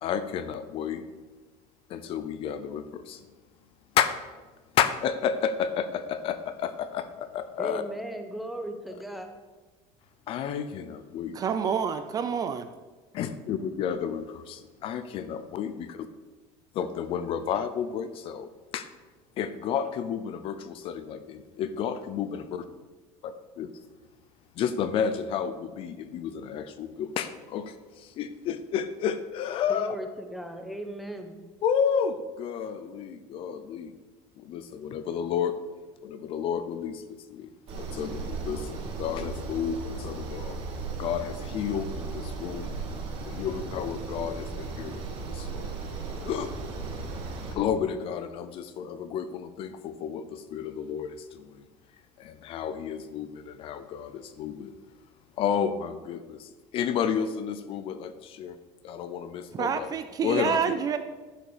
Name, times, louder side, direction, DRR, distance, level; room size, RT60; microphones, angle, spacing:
voice 1, 0.0-1.0 1.9-3.3 3.9-4.2 4.7-7.8 10.3-11.4 13.1-16.1 16.7-18.9 19.4-22.6 23.2-23.7 24.6-30.0 31.6-33.9 34.4-35.5 36.0-37.5 37.8-40.6 41.0-42.7 43.3-45.8 46.1-46.5 47.5-51.6 52.2-54.7 55.4-58.6 58.8-59.9 60.2-60.7, left 8 dB, 40° left, 11 dB, 0.7 m, -31 dB
voice 2, 7.6-9.3 29.7-31.4, right 1 dB, ahead, 5 dB, 1.0 m, -37 dB
voice 3, 11.3-12.7 59.5-61.0, right 7 dB, 25° right, 9 dB, 0.5 m, -28 dB
sound 1, 37.7-47.5, right 4 dB, 40° right, 2.7 m, -36 dB
10.5 x 6.6 x 6.7 m, 1.3 s
cardioid pair, 165°, 14 cm